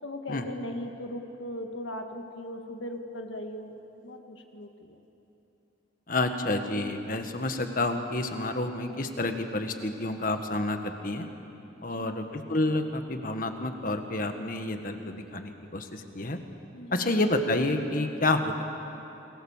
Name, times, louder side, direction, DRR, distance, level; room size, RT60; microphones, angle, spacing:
voice 1, 0.0-5.0 11.8-12.3 16.7-17.2, left 1 dB, 70° left, 5 dB, 1.9 m, -39 dB
voice 2, 6.1-11.3 11.8-16.4 16.9-18.6, left 2 dB, 45° left, 6 dB, 1.6 m, -29 dB
29.0 x 21.5 x 7.4 m, 3.0 s
head